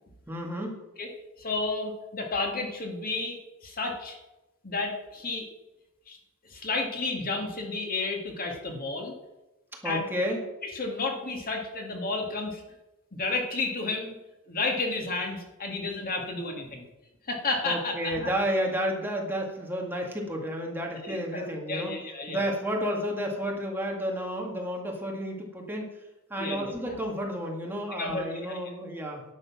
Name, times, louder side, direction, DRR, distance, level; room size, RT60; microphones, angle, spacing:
voice 1, 0.3-0.8 9.8-10.4 17.6-21.9 22.3-25.9 26.3-29.2, equal, 10° right, 0 dB, 2.0 m, -31 dB
voice 2, 1.4-4.2 4.6-5.5 6.1-6.2 6.5-9.1 9.8-10.0 10.6-12.6 13.1-14.2 14.5-16.9 17.2-18.3 21.0-22.5 26.4-27.0 28.0-28.7, left 3 dB, 40° left, 1 dB, 2.1 m, -32 dB
11.0 x 9.7 x 6.0 m, 0.99 s
head